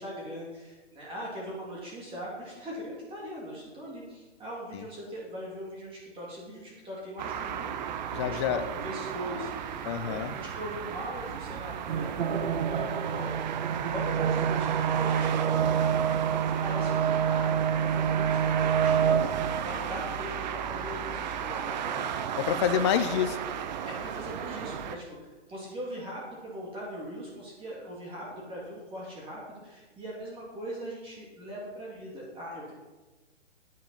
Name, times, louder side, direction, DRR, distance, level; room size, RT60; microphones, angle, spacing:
voice 1, 0.0-7.7 8.1-13.4 13.9-22.1 23.9-32.7, equal, 15° right, -4 dB, 2.5 m, -40 dB
sound 1, 7.2-25.0, right 8 dB, 40° right, 0.8 m, -34 dB
voice 2, 8.1-8.6 9.8-10.3 22.4-23.4, left 9 dB, 25° left, 8 dB, 0.5 m, -27 dB
sound 2, 11.9-19.6, right 8 dB, 60° right, 1.1 m, -27 dB
9.8 x 9.0 x 5.6 m, 1.2 s
hypercardioid pair, 150°, 36 cm